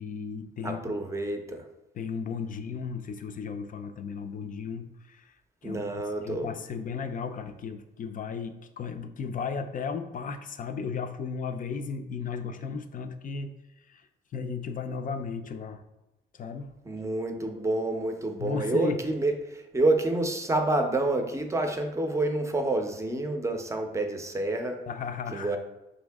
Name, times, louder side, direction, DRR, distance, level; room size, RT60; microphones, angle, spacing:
voice 1, 0.0-0.9 1.9-5.3 5.6-13.5 13.9-14.0 14.3-15.8 16.3-16.7 18.4-19.0 24.9-25.6, left 5 dB, 40° left, 8 dB, 0.5 m, -35 dB
voice 2, 0.6-1.6 5.6-6.5 16.8-24.8 25.3-25.6, right 2 dB, 15° right, 5 dB, 0.6 m, -28 dB
5.3 x 2.7 x 3.4 m, 0.97 s
cardioid pair, 90°, 20 cm